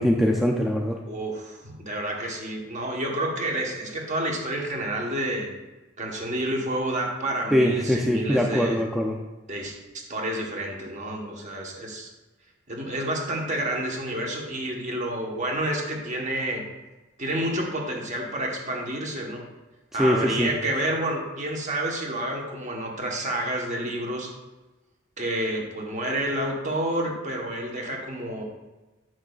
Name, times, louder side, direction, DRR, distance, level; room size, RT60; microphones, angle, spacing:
voice 1, 0.0-1.0 7.5-9.2 20.0-20.5, equal, ahead, -1 dB, 0.3 m, -22 dB
voice 2, 1.0-5.5 6.0-8.8 9.5-12.1 12.7-16.6 17.2-19.4 19.9-24.3 25.2-28.4, right 1 dB, 35° right, 0 dB, 1.1 m, -29 dB
7.6 x 6.1 x 2.4 m, 1.1 s
head